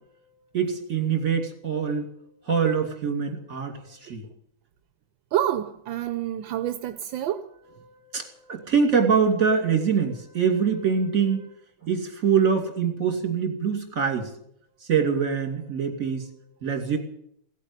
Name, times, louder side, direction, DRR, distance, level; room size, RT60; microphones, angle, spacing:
voice 1, 0.5-2.1 2.5-4.2 7.8-11.5 11.8-14.3 14.8-16.3 16.6-17.0, right 6 dB, 45° right, 3.0 m, -24 dB
voice 2, 5.3-7.5, right 11 dB, 80° right, 1.5 m, -28 dB
16.5 x 8.4 x 9.8 m
omnidirectional pair, 2.1 m